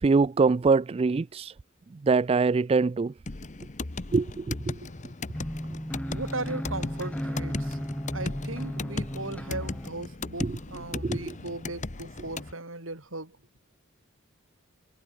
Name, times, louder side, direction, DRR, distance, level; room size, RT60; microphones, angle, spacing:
voice 1, 0.0-1.5 2.0-3.1 4.1-4.8 10.4-10.6 11.0-11.3, right 4 dB, 30° right, 0.3 m, -24 dB
sound 1, 3.3-12.5, left 2 dB, 35° left, 1.0 m, -37 dB
sound 2, 5.3-9.9, equal, 5° left, 2.3 m, -35 dB
voice 2, 6.1-7.8 8.1-13.4, right 2 dB, 65° right, 7.4 m, -37 dB
head